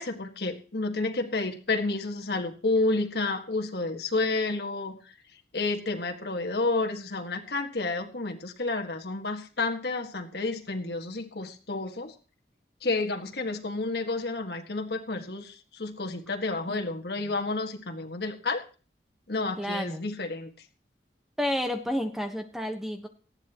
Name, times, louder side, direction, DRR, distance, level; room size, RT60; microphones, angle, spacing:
voice 1, 0.0-5.0 5.5-12.1 12.8-18.6 19.3-20.5, left 3 dB, 65° left, 3 dB, 1.8 m, -30 dB
voice 2, 19.6-20.1 21.4-23.1, left 1 dB, ahead, 5 dB, 1.2 m, -30 dB
18.5 x 14.5 x 3.0 m, 0.37 s
head